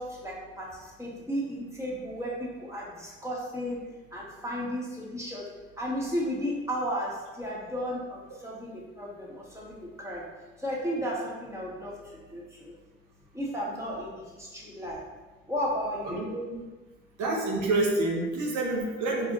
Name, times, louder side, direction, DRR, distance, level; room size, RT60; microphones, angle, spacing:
voice 1, 0.0-3.8 4.1-5.5 5.8-10.2 10.6-12.7 13.3-15.0 15.5-16.2, equal, 10° right, -5 dB, 1.5 m, -34 dB
voice 2, 16.0-16.6 17.2-19.3, right 2 dB, 65° right, -2 dB, 0.9 m, -28 dB
4.8 x 2.5 x 2.7 m, 1.2 s
hypercardioid pair, 40°, 32 cm